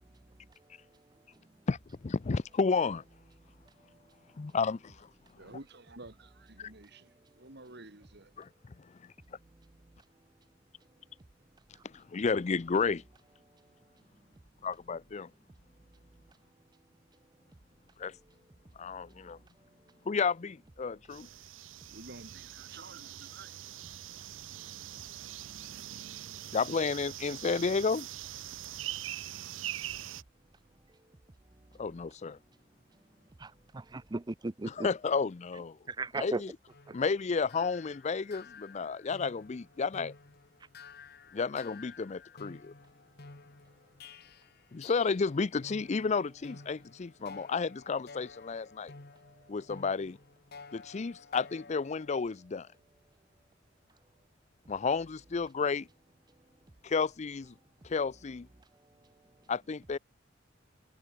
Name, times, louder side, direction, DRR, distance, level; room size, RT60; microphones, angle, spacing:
voice 1, 2.0-3.0 4.4-5.1 8.4-8.5 11.9-13.0 14.6-15.3 18.0-18.1 18.8-19.4 20.1-21.3 26.5-28.1 31.8-32.4 34.8-35.8 36.2-36.3 36.9-40.1 41.3-42.7 44.7-48.9 49.5-50.2 50.7-52.7 54.7-55.9 56.8-57.5 57.8-58.5 59.5-60.0, left 5 dB, 35° left, 0.5 m, -31 dB
voice 2, 5.4-8.3 21.8-23.6, right 2 dB, 60° right, 4.2 m, -51 dB
sound 1, 21.1-30.2, right 13 dB, 85° right, 0.6 m, -43 dB
voice 3, 33.4-34.9 35.5-36.4 36.9-37.0, right 2 dB, 20° right, 0.5 m, -37 dB
sound 2, 36.7-45.4 45.6-52.1, left 4 dB, 55° left, 1.7 m, -53 dB
head